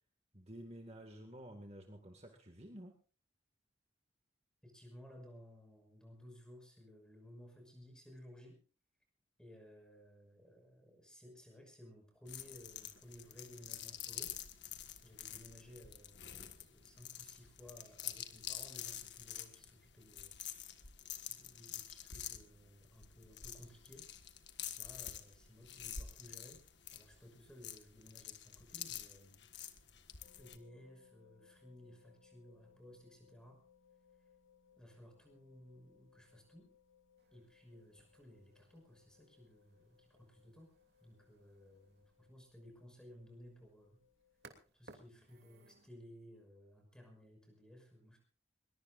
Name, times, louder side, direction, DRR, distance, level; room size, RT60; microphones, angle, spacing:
voice 1, 0.3-3.0, right 1 dB, 30° right, 3 dB, 2.0 m, -51 dB
voice 2, 4.6-8.6 9.4-14.4 15.0-20.4 21.3-24.1 24.8-26.6 26.9-29.5 30.4-33.6 34.8-36.7 37.3-40.7 41.0-44.0 44.7-48.2, equal, 5° left, 3 dB, 5.9 m, -58 dB
sound 1, 12.3-30.6, left 10 dB, 60° left, 1.6 m, -48 dB
sound 2, 30.2-44.6, left 7 dB, 90° left, 3.2 m, -69 dB
sound 3, 37.2-45.9, right 3 dB, 55° right, 2.9 m, -65 dB
22.0 x 21.5 x 2.6 m, 0.38 s
head